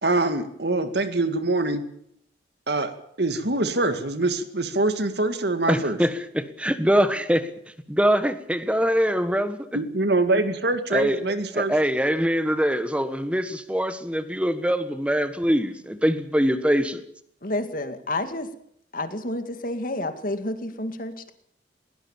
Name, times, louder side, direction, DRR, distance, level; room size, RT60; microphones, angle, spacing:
voice 1, 0.0-1.8 2.7-2.9 3.2-6.0 9.7-11.7, right 2 dB, 60° right, 2.0 m, -24 dB
voice 2, 5.7-7.5 7.9-9.7 10.9-11.2 11.5-17.0, equal, 5° right, 1.4 m, -23 dB
voice 3, 17.4-18.5 18.9-21.3, left 1 dB, 50° left, 2.2 m, -30 dB
21.0 x 18.0 x 7.3 m
head